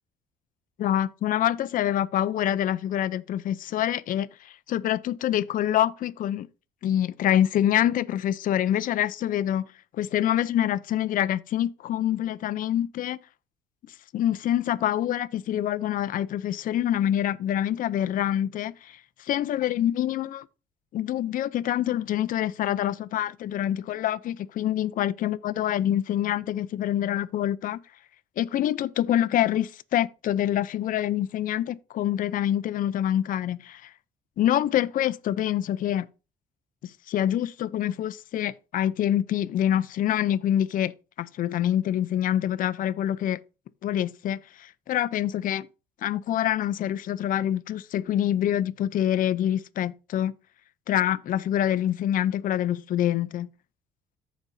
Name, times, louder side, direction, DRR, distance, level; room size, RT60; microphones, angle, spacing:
voice 1, 0.8-6.5 6.8-9.7 10.0-13.2 14.1-20.5 20.9-27.8 28.4-33.9 34.4-36.1 36.8-43.4 43.8-45.7 46.0-50.3 50.9-53.5, left 11 dB, 55° left, 0.5 m, -26 dB
14.5 x 5.1 x 2.7 m
cardioid pair, 110°, 17 cm